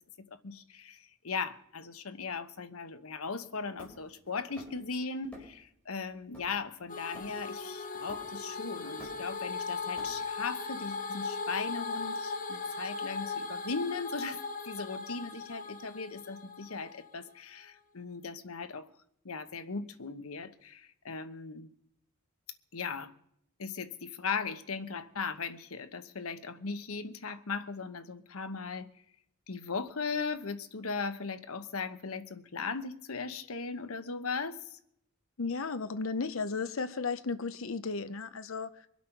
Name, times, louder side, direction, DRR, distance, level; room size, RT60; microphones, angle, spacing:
voice 1, 0.3-14.4 14.7-18.9 19.2-21.7 22.7-23.1 23.6-28.9 29.5-34.8, left 4 dB, 85° left, 1.0 m, -38 dB
Hammer, 3.8-4.9 5.3-5.7 6.0-7.6 8.1-8.5 8.8-10.5, equal, 5° left, 4.7 m, -51 dB
sound 1, 6.9-17.1, left 4 dB, 40° left, 1.4 m, -38 dB
voice 2, 35.4-38.9, left 4 dB, 70° left, 0.7 m, -34 dB
24.0 x 8.4 x 5.9 m
head